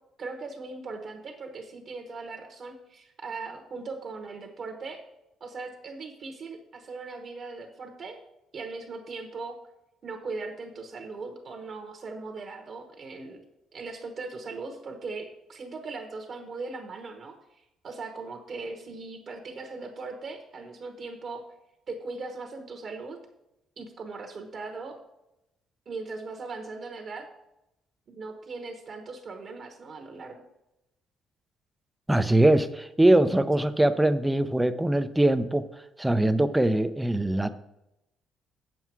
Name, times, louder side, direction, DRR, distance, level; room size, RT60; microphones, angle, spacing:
voice 1, 0.2-5.0 5.4-8.2 8.5-9.6 10.0-13.4 13.7-21.5 21.9-23.2 23.8-25.0 25.9-27.3 28.1-30.3, right 3 dB, 35° right, 4 dB, 1.1 m, -39 dB
voice 2, 32.1-37.5, right 1 dB, 5° right, 11 dB, 0.4 m, -22 dB
8.3 x 7.5 x 4.6 m, 0.90 s
cardioid pair, 170°, 0 cm